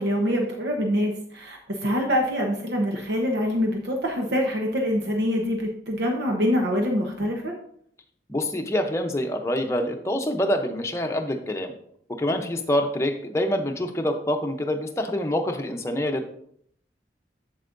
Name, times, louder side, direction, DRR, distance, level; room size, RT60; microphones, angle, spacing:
voice 1, 0.0-7.5, equal, 80° right, 1 dB, 1.0 m, -25 dB
voice 2, 8.3-11.7 12.2-16.3, left 1 dB, 15° left, 3 dB, 0.7 m, -26 dB
8.1 x 7.4 x 2.6 m, 0.66 s
head